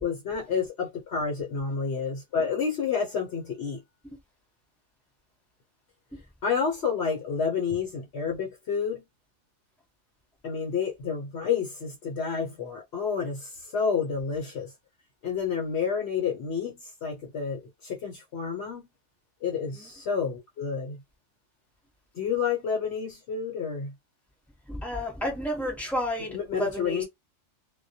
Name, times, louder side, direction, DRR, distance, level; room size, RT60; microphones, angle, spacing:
voice 1, 0.0-3.8 6.4-9.0 10.4-14.7 15.2-18.9 19.4-21.0 22.1-23.9 26.3-27.0, left 6 dB, 65° left, 0.9 m, -29 dB
voice 2, 24.7-27.0, equal, ahead, 0.8 m, -31 dB
2.2 x 2.1 x 2.6 m
omnidirectional pair, 1.2 m